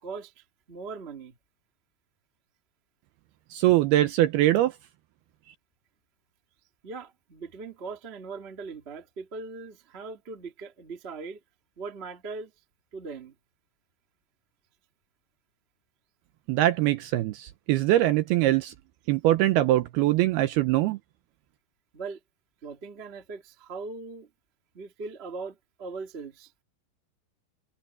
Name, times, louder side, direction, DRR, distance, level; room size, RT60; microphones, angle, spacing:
voice 1, 0.0-1.4 6.8-11.4 11.8-12.5 12.9-13.3 21.9-22.2 22.6-24.3 24.7-26.5, right 4 dB, 45° right, 0.7 m, -40 dB
voice 2, 3.5-4.7 16.5-18.7 19.1-21.0, right 15 dB, 80° right, 2.4 m, -22 dB
omnidirectional pair, 5.2 m